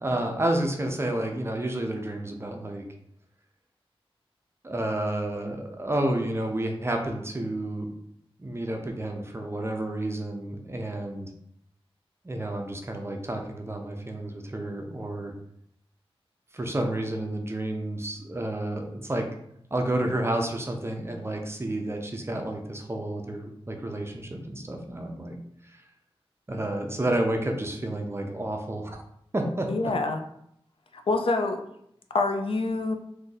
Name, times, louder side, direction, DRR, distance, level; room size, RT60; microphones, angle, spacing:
voice 1, 0.0-2.8 4.6-7.9 8.4-11.3 12.2-15.3 16.5-19.3 19.7-25.4 25.6-25.8 26.5-29.0 29.3-29.9, right 1 dB, 25° right, 3 dB, 0.5 m, -30 dB
voice 2, 29.7-30.2 30.9-31.6 32.1-32.9, left 3 dB, 65° left, 5 dB, 0.4 m, -26 dB
2.6 x 2.5 x 3.9 m, 0.73 s
wide cardioid pair, 95°, 10 cm